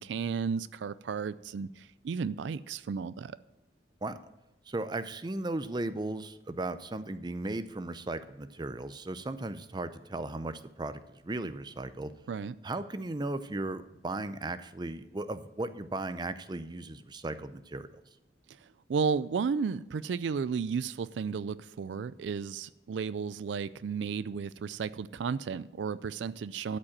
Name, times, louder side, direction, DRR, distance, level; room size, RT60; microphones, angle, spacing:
voice 1, 0.0-3.4 12.3-12.5 18.5-26.8, right 6 dB, 80° right, 16 dB, 0.4 m, -33 dB
voice 2, 4.7-12.1 12.6-17.9, right 2 dB, 25° right, 12 dB, 0.5 m, -36 dB
12.5 x 5.3 x 7.3 m, 0.96 s
head